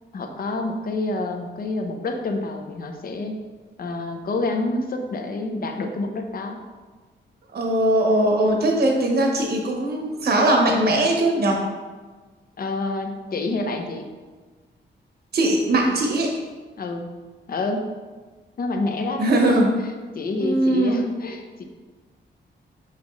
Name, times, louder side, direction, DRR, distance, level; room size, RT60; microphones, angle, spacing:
voice 1, 0.1-3.4 3.8-6.6 12.6-14.1 16.8-17.1 17.5-17.9 18.6-21.6, left 2 dB, 50° left, 5 dB, 0.7 m, -28 dB
voice 2, 7.5-11.6 15.3-16.3 19.2-19.7 20.4-21.0, right 1 dB, 55° right, 0 dB, 0.9 m, -20 dB
6.2 x 5.6 x 3.1 m, 1.4 s
wide cardioid pair, 155°, 19 cm